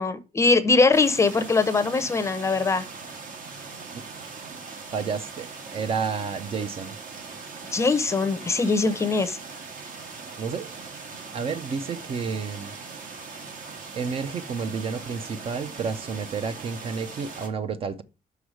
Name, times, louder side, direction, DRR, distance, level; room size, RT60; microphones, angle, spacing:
voice 1, 0.0-2.9 7.7-9.4, left 3 dB, 20° left, 0.6 m, -22 dB
sound 1, 0.9-17.5, right 4 dB, 65° right, 1.7 m, -40 dB
voice 2, 4.9-7.0 10.4-10.7 11.3-12.7 13.9-18.0, right 5 dB, 40° right, 0.5 m, -30 dB
6.2 x 4.9 x 6.2 m
cardioid pair, 170°, 15 cm